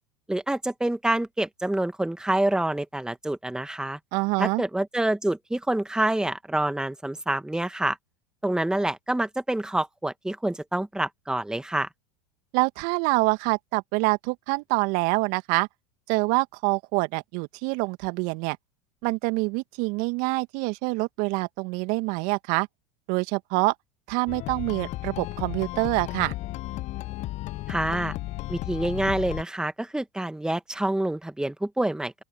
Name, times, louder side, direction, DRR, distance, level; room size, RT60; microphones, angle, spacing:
voice 1, 0.3-4.0 4.4-8.0 8.4-11.9 27.7-28.2 28.5-32.1, right 1 dB, 5° right, 1.8 m, -27 dB
voice 2, 4.1-4.6 12.5-15.7 16.1-18.6 19.0-22.7 23.1-23.7 24.1-26.3, right 27 dB, 60° right, 2.1 m, -26 dB
sound 1, 24.3-29.4, left 17 dB, 45° left, 0.7 m, -34 dB
open air
hypercardioid pair, 85°, 16 cm